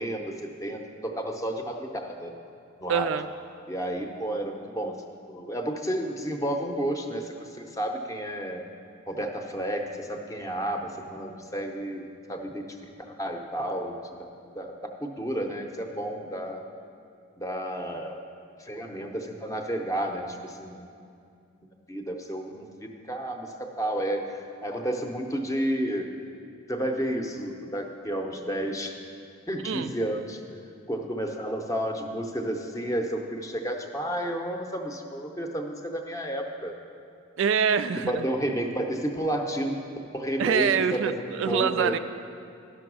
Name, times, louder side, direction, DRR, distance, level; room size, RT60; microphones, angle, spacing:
voice 1, 0.0-2.3 2.8-3.1 3.7-5.0 5.3-8.6 9.1-12.0 12.3-14.3 14.5-16.6 17.4-18.2 18.6-20.9 21.9-26.1 26.7-29.0 29.5-30.4 30.9-36.7 38.0-39.8 40.1-41.9, right 1 dB, 15° left, 3 dB, 0.7 m, -31 dB
voice 2, 2.9-3.3 29.6-29.9 37.4-38.3 40.4-42.0, right 7 dB, 60° right, 11 dB, 0.3 m, -25 dB
11.5 x 6.0 x 6.2 m, 2.5 s
head